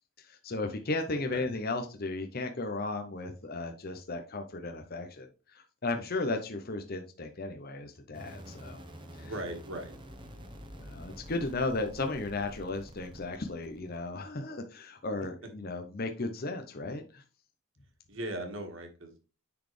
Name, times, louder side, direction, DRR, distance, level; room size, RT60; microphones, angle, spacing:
voice 1, 0.2-8.8 9.2-9.3 10.8-17.2, left 2 dB, 45° left, 0.8 m, -35 dB
voice 2, 1.1-1.5 9.2-10.0 18.1-19.2, right 1 dB, 65° right, 1.7 m, -39 dB
sound 1, 8.1-14.3, equal, 20° right, 0.9 m, -48 dB
10.0 x 4.1 x 3.3 m
head